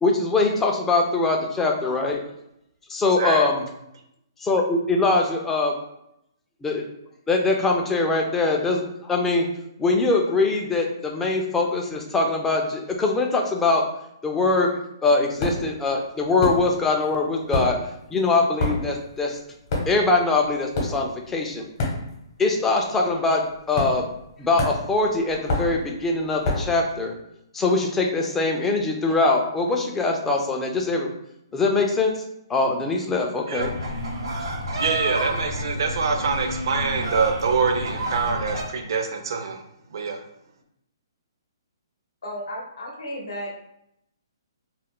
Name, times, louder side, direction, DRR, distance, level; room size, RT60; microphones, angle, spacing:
voice 1, 0.0-2.2 2.9-3.6 4.4-5.8 6.6-6.8 7.3-9.4 9.8-13.8 14.2-14.7 15.0-17.7 18.1-19.4 19.9-21.7 22.4-24.1 24.4-27.1 27.5-31.1 31.5-32.2 32.5-33.7, left 3 dB, 10° left, 1 dB, 0.3 m, -22 dB
sound 1, 15.4-15.8 16.4-17.0 17.3-22.4 22.7-23.0 23.7-24.3 24.6-26.8, left 2 dB, 45° left, 0.8 m, -28 dB
sound 2, 33.6-38.6, right 1 dB, 80° right, 0.8 m, -30 dB
voice 2, 34.8-39.6 39.9-40.2, right 5 dB, 65° right, 4 dB, 0.5 m, -25 dB
voice 3, 42.2-43.5, equal, 80° left, -1 dB, 0.8 m, -33 dB
2.4 x 2.0 x 3.5 m, 0.79 s
hypercardioid pair, 150°, 2 cm